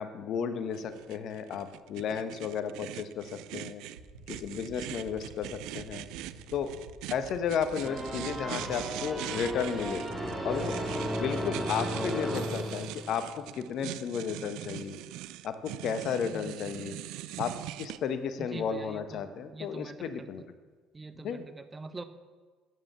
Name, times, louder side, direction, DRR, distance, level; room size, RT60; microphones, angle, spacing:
voice 1, 0.0-3.8 4.3-6.1 6.5-6.7 7.1-10.0 10.4-10.8 11.2-15.0 15.4-16.9 17.4-20.4 21.2-21.4, left 7 dB, 55° left, 10 dB, 1.1 m, -33 dB
sound 1, 0.7-18.0, right 15 dB, 70° right, 0.5 m, -42 dB
sound 2, 3.8-11.6, right 3 dB, 90° right, 2.2 m, -50 dB
sound 3, 7.8-13.5, right 1 dB, 5° right, 3.3 m, -35 dB
voice 2, 18.4-20.5 20.9-22.0, right 3 dB, 25° right, 10 dB, 1.2 m, -44 dB
13.0 x 9.6 x 6.9 m, 1.4 s
hypercardioid pair, 55°, 0 cm